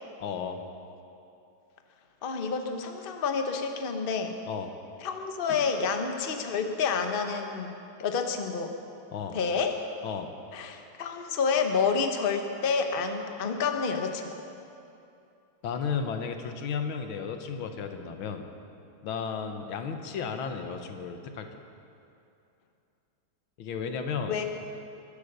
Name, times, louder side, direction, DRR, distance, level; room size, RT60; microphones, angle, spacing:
voice 1, 0.2-0.6 4.5-4.7 5.5-5.6 9.1-9.4 10.0-10.3 15.6-18.5 19.0-21.5 23.6-24.4, left 6 dB, 90° left, 6 dB, 1.9 m, -34 dB
voice 2, 2.2-4.4 5.0-8.7 9.3-9.8 10.5-14.4 24.3-24.4, left 5 dB, 35° left, 5 dB, 0.9 m, -29 dB
23.0 x 8.6 x 6.7 m, 2.7 s
omnidirectional pair, 2.1 m